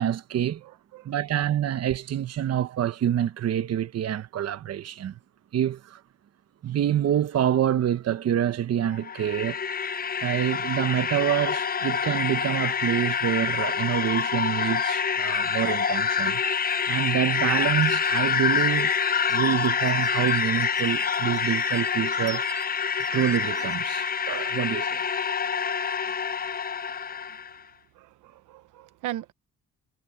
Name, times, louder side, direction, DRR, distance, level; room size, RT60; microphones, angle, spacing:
voice 1, 0.0-0.6 1.0-5.1 5.5-6.0 6.6-9.6 10.2-16.5 16.9-18.9 19.3-22.4 23.1-25.0, right 10 dB, 55° right, 1.0 m, -26 dB
voice 2, 0.6-1.1 26.0-26.2 26.8-27.4 27.9-29.3, right 14 dB, 85° right, 1.0 m, -40 dB
sound 1, 8.9-27.5, left 6 dB, 30° left, 0.7 m, -26 dB
sound 2, 17.8-23.7, right 2 dB, 10° right, 0.8 m, -40 dB
cardioid pair, 90°, 30 cm